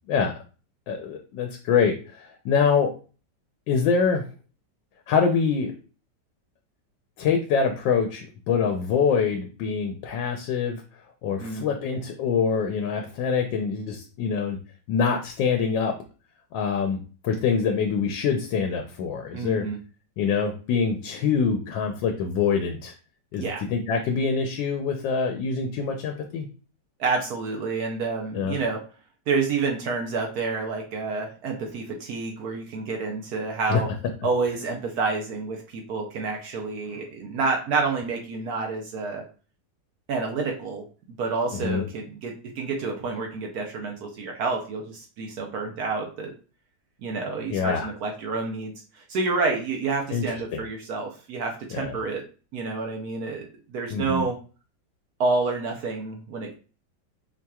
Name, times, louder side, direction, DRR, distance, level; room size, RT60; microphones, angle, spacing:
voice 1, 0.9-2.9 3.7-4.2 5.1-5.7 7.2-10.8 11.2-14.6 14.9-15.9 16.5-19.7 20.2-22.9 23.3-26.5 28.3-28.6 33.7-33.8 41.5-41.8 47.5-47.9 50.1-50.2 50.5-50.6 51.7-52.0 53.9-54.2, left 6 dB, 90° left, 4 dB, 1.3 m, -25 dB
voice 2, 19.3-19.8 23.4-23.6 27.0-28.8 29.3-33.9 34.2-39.2 40.1-40.8 41.2-46.3 47.0-52.2 52.5-54.4 55.2-56.5, right 4 dB, 65° right, 2 dB, 1.1 m, -29 dB
4.7 x 2.8 x 2.3 m, 0.35 s
omnidirectional pair, 1.9 m